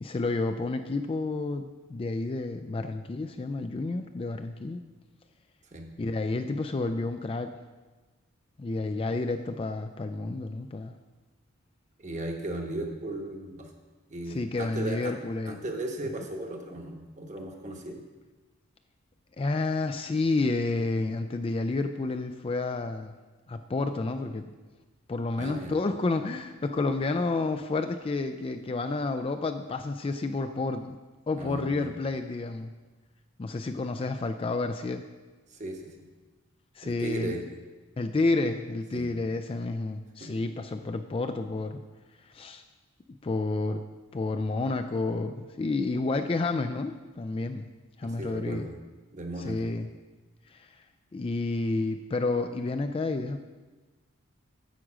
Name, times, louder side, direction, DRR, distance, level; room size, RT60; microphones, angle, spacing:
voice 1, 0.0-4.8 6.0-7.5 8.6-11.0 14.3-15.6 19.4-23.1 23.5-24.5 25.1-31.0 31.3-32.7 33.4-35.0 36.8-37.4 38.0-41.8 42.3-42.6 43.2-43.8 44.1-47.6 48.0-48.7 49.4-49.9 50.5-50.7 51.1-53.4, left 3 dB, 25° left, 8 dB, 0.3 m, -30 dB
voice 2, 12.0-13.7 14.1-15.1 15.4-18.0 25.4-25.7 31.4-31.9 35.5-35.9 36.8-37.4 38.9-39.1 40.2-40.3 48.0-48.7 49.1-49.7, right 2 dB, 35° right, 2 dB, 1.1 m, -36 dB
9.4 x 5.1 x 7.4 m, 1.3 s
head